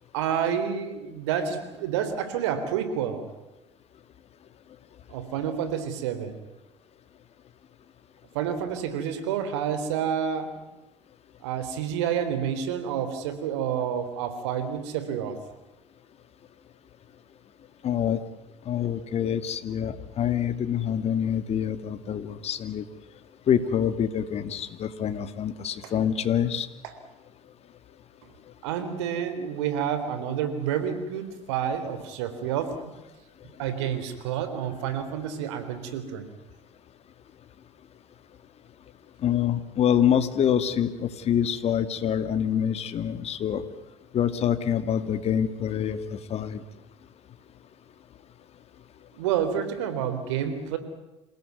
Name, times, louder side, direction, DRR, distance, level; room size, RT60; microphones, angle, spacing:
voice 1, 0.1-3.3 5.1-6.3 8.3-10.5 11.4-15.4 25.8-25.9 28.6-32.9 33.6-36.3 49.2-50.8, right 8 dB, 75° right, 10 dB, 3.5 m, -29 dB
voice 2, 17.8-18.2 18.7-22.8 23.5-26.7 39.2-43.6 44.1-46.6, left 9 dB, 45° left, 11 dB, 2.4 m, -26 dB
28.0 x 17.5 x 9.4 m, 1.0 s
hypercardioid pair, 70°, 15 cm